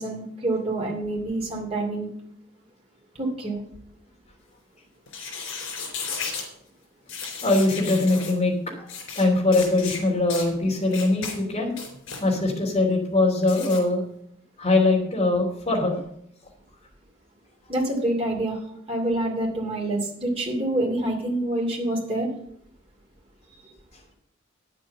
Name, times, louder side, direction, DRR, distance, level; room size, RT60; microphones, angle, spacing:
voice 1, 0.0-2.1 3.2-3.6 17.7-18.6 18.9-22.3 23.6-23.7, right 1 dB, 30° right, -1 dB, 2.7 m, -27 dB
sound 1, 5.1-6.5 7.1-8.3 8.9-9.2 9.5-10.0 10.3-10.5 10.9-11.3 11.7-12.2 13.4-13.8, left 5 dB, 90° left, 3.8 m, -34 dB
voice 2, 7.4-11.7 12.2-14.0 14.6-16.0, left 2 dB, 35° left, 0 dB, 3.0 m, -22 dB
9.4 x 7.6 x 6.6 m, 0.70 s
head